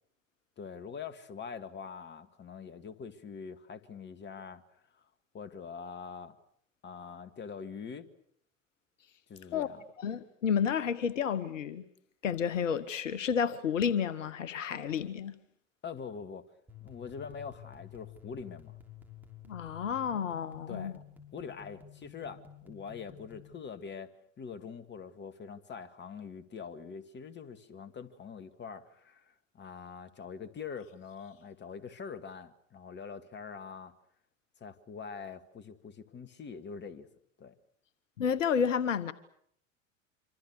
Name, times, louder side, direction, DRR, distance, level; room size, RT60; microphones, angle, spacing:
voice 1, 0.6-4.6 4.9-5.0 5.3-6.3 6.8-8.1 9.3-9.8 15.8-16.5 16.8-18.7 20.7-21.0 21.3-24.1 24.4-33.9 34.6-37.1 37.4-37.5, left 6 dB, 25° left, 2.2 m, -44 dB
voice 2, 10.0-11.8 12.2-15.3 19.5-21.0 38.2-39.1, left 7 dB, 70° left, 1.3 m, -31 dB
sound 1, 16.7-23.5, left 9 dB, 5° right, 6.0 m, -52 dB
26.5 x 26.0 x 6.6 m
figure-of-eight pair, 75°, 39 cm